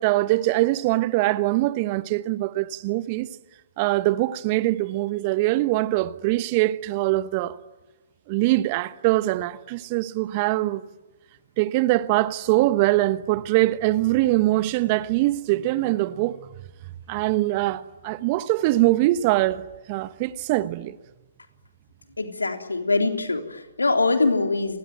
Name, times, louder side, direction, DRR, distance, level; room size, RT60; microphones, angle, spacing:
voice 1, 0.0-3.3 3.8-7.6 8.3-10.8 11.6-16.4 17.1-21.0, right 17 dB, 35° right, 1.1 m, -23 dB
voice 2, 22.2-24.8, left 3 dB, 80° left, 3.5 m, -23 dB
29.5 x 20.5 x 9.2 m
figure-of-eight pair, 130°, 0 cm